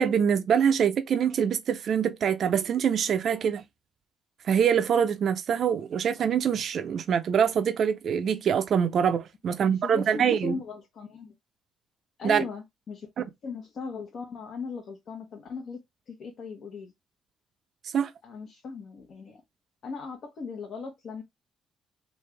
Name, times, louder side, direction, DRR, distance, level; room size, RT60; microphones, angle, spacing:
voice 1, 0.0-3.6 4.4-10.6 12.2-12.4 17.9-18.1, right 7 dB, 60° right, 0.5 m, -24 dB
voice 2, 9.6-11.3 12.2-13.1 13.4-15.8 16.1-16.9 18.2-19.4 19.8-21.2, left 4 dB, 65° left, 1.0 m, -38 dB
3.3 x 2.5 x 3.3 m
cardioid pair, 90°, 0 cm